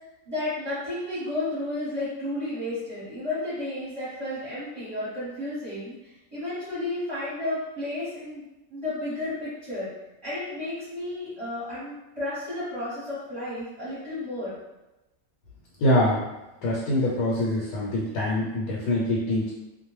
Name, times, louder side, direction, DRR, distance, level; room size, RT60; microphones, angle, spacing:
voice 1, 0.2-8.4 8.7-9.9 10.2-14.5, left 1 dB, 25° right, -12 dB, 0.9 m, -32 dB
voice 2, 15.8-16.2 16.6-19.5, left 1 dB, 85° left, -5 dB, 1.1 m, -24 dB
2.4 x 2.1 x 3.0 m, 1.0 s
omnidirectional pair, 1.5 m